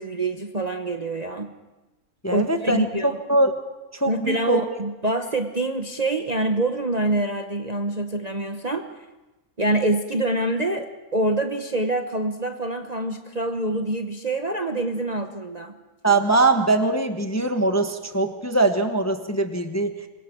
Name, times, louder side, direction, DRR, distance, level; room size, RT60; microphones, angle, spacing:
voice 1, 0.0-1.5 2.3-3.2 4.0-8.9 9.6-15.7, right 2 dB, 30° right, 5 dB, 0.9 m, -26 dB
voice 2, 2.2-3.6 3.9-4.6 16.0-20.1, right 2 dB, 10° left, 6 dB, 0.9 m, -22 dB
26.5 x 22.0 x 4.6 m, 1.1 s
omnidirectional pair, 1.7 m